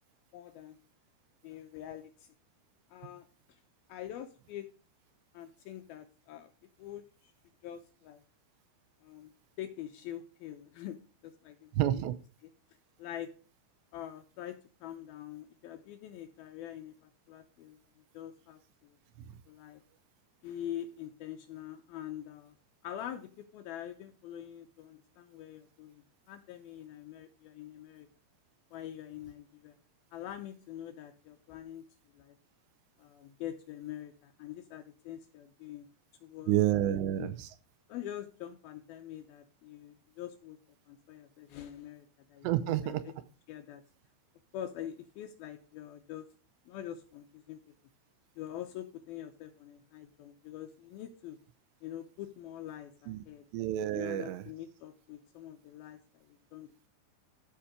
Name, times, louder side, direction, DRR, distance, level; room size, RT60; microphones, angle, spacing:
voice 1, 0.3-0.8 1.4-2.3 2.9-3.6 3.9-4.7 5.3-6.5 6.8-7.3 7.6-8.2 9.0-9.3 9.6-11.0 11.2-12.0 12.4-12.5 13.0-13.3 13.9-17.8 18.1-19.0 19.5-19.8 20.4-22.5 22.8-28.1 28.7-29.7 30.1-31.8 32.1-32.4 33.0-35.9 36.2-36.5 37.2-37.3 37.9-40.6 40.9-42.6 42.8-42.9 43.5-43.8 44.5-46.3 46.7-47.6 48.4-51.4 51.8-53.4 53.9-56.9, left 11 dB, 80° left, 6 dB, 2.3 m, -44 dB
voice 2, 11.8-12.1 36.5-37.5 42.4-43.0 53.1-53.2 53.5-54.4, right 12 dB, 85° right, 12 dB, 2.9 m, -29 dB
14.0 x 5.7 x 5.0 m, 0.37 s
omnidirectional pair, 5.0 m